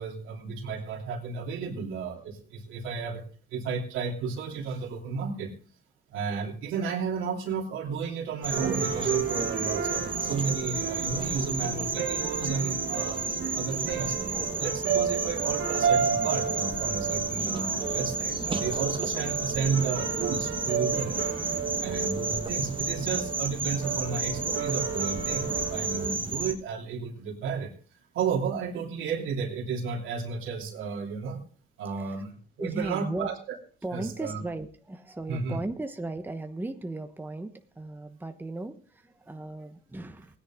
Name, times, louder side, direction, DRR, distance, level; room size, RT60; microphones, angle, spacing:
voice 1, 0.0-3.2 3.5-5.5 6.1-13.2 13.5-14.2 14.6-21.2 21.8-27.7 28.1-31.4 31.8-33.6 33.9-34.4 35.3-35.6, right 5 dB, 85° right, 1 dB, 2.9 m, -33 dB
sound 1, 8.4-26.5, right 3 dB, 25° right, 1.5 m, -32 dB
sound 2, 8.5-26.2, right 6 dB, 70° right, 2.2 m, -32 dB
voice 2, 32.6-33.3 33.8-40.4, right 2 dB, 10° right, 7 dB, 1.1 m, -36 dB
16.5 x 10.0 x 3.7 m, 0.41 s
cardioid pair, 90°, 20 cm